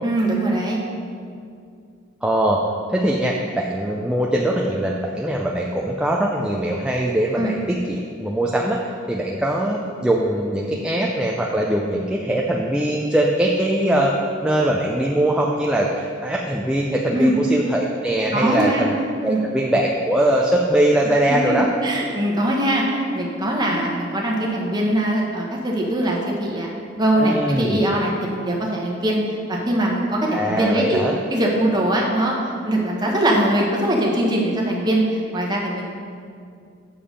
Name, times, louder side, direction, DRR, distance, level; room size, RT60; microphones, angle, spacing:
voice 1, 0.0-0.8 7.3-7.5 17.1-17.3 18.3-18.9 19.2-19.4 21.3-29.2 29.5-31.0 31.3-32.3 32.6-35.8, right 1 dB, 20° right, -2 dB, 1.2 m, -21 dB
voice 2, 2.2-2.6 2.9-18.9 19.2-21.7 27.2-27.8 30.3-31.2, right 1 dB, 5° right, -2 dB, 0.4 m, -21 dB
7.1 x 6.8 x 5.1 m, 2.3 s
head